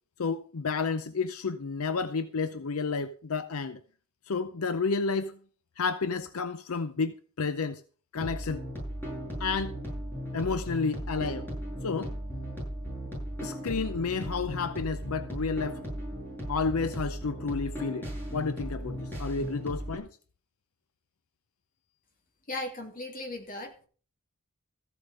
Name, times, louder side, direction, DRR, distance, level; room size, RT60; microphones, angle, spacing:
voice 1, 0.2-3.8 4.3-5.4 5.8-7.8 8.1-8.6 9.4-9.8 10.3-11.5 11.8-12.1 13.4-15.8 16.5-20.1, left 4 dB, 70° left, 0.6 m, -31 dB
sound 1, 8.2-20.0, equal, 10° left, 7.9 m, -37 dB
voice 2, 22.5-23.9, left 2 dB, 40° left, 2.6 m, -37 dB
14.5 x 8.3 x 5.4 m
head